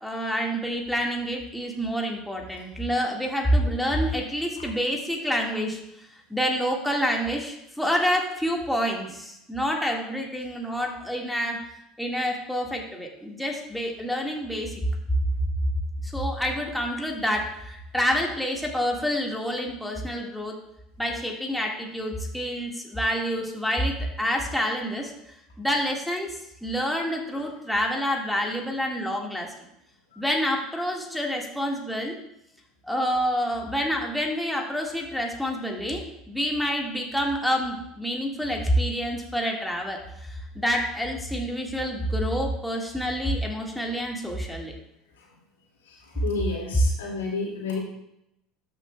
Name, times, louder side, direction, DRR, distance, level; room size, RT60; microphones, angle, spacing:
voice 1, 0.0-5.8 6.3-11.6 12.0-14.7 16.0-20.5 21.0-25.1 25.6-26.3 26.6-29.5 30.2-32.1 32.9-44.7, equal, ahead, -1 dB, 1.7 m, -27 dB
voice 2, 46.2-47.8, left 4 dB, 80° left, -2 dB, 2.3 m, -30 dB
13.0 x 6.8 x 2.3 m, 0.82 s
hypercardioid pair, 75°, 0 cm